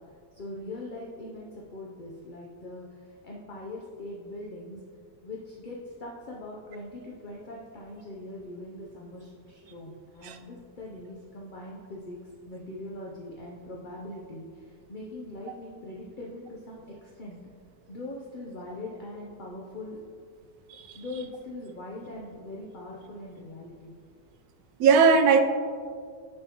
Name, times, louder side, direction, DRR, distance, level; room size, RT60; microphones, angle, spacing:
voice 1, 0.1-4.8 5.2-12.2 12.5-17.4 17.9-20.0 20.9-23.9, left 2 dB, 45° left, -3 dB, 0.6 m, -41 dB
voice 2, 24.8-25.4, right 5 dB, 80° right, 6 dB, 1.1 m, -19 dB
9.5 x 5.6 x 3.0 m, 2.1 s
omnidirectional pair, 1.6 m